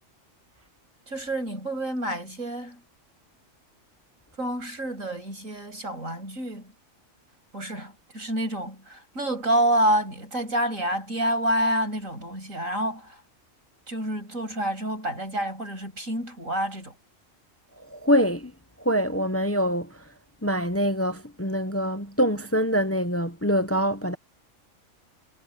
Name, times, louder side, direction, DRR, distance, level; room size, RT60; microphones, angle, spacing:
voice 1, 1.1-2.8 4.4-6.7 7.5-13.2 13.9-16.9, right 1 dB, 85° right, 8.1 m, -28 dB
voice 2, 17.9-18.5 18.8-20.0 20.4-24.2, equal, 10° left, 0.9 m, -24 dB
omnidirectional pair, 1.3 m